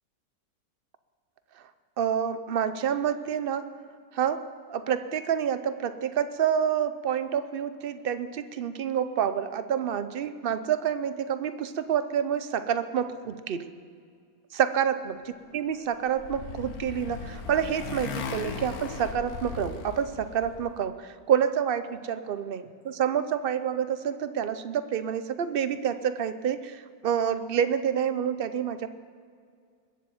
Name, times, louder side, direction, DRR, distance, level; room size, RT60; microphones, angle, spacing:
voice 1, 2.0-3.7 4.1-13.7 14.5-28.9, right 8 dB, 55° right, 11 dB, 0.6 m, -28 dB
Motorcycle, 15.7-20.7, left 5 dB, 70° left, 1.4 m, -38 dB
21.5 x 7.7 x 7.1 m, 2.2 s
omnidirectional pair, 1.7 m